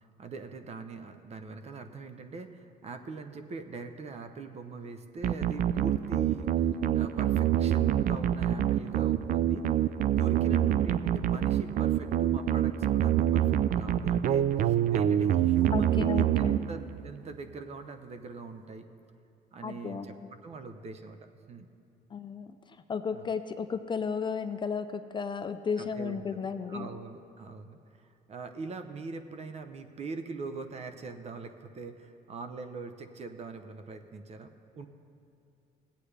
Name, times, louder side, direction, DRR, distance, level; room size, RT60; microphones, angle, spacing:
voice 1, 0.0-9.7 10.2-18.9 19.5-20.1 20.4-21.2 21.5-21.7 23.1-23.3 25.8-34.9, right 4 dB, 40° right, 8 dB, 0.8 m, -42 dB
sound 1, 5.2-17.1, right 10 dB, 55° right, 0.4 m, -26 dB
voice 2, 15.7-16.6 19.6-20.1 22.1-26.9, left 6 dB, 30° left, 9 dB, 0.4 m, -34 dB
17.0 x 8.4 x 3.3 m, 2.7 s
cardioid pair, 110°, 17 cm